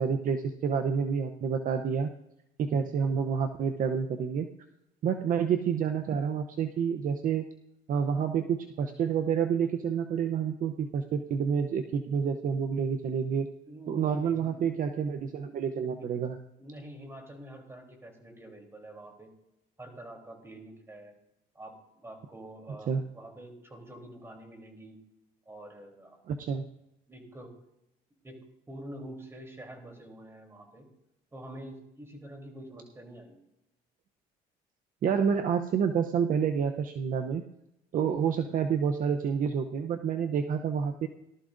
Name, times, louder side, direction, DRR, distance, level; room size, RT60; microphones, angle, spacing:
voice 1, 0.0-2.1 2.6-4.5 5.0-7.4 7.9-13.5 13.9-16.4 22.9-23.0 26.3-26.6 35.0-37.5 37.9-41.1, right 7 dB, 55° right, 6 dB, 0.7 m, -28 dB
voice 2, 13.7-14.7 16.0-16.1 16.6-19.3 19.8-21.1 21.5-25.0 25.4-26.2 27.1-27.5 28.2-28.4 28.7-30.9 31.3-33.4, right 1 dB, 15° right, 2 dB, 3.3 m, -46 dB
18.0 x 12.5 x 2.6 m, 0.85 s
cardioid pair, 110°, 17 cm